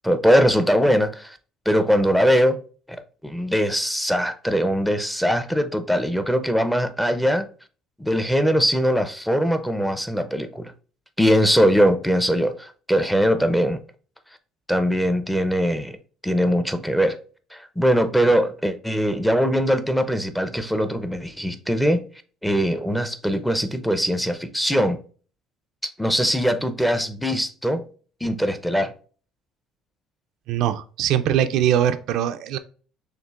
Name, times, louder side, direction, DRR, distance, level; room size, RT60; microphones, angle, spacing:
voice 1, 0.0-1.4 1.7-2.6 2.9-7.5 8.0-10.7 11.2-13.8 14.7-16.0 16.2-17.2 17.5-22.0 22.4-25.0 25.8-27.9 28.2-28.9, equal, 5° left, 0.6 m, -21 dB
voice 2, 30.5-32.6, right 10 dB, 70° right, 0.4 m, -22 dB
6.4 x 2.5 x 2.3 m
cardioid pair, 105°, 0 cm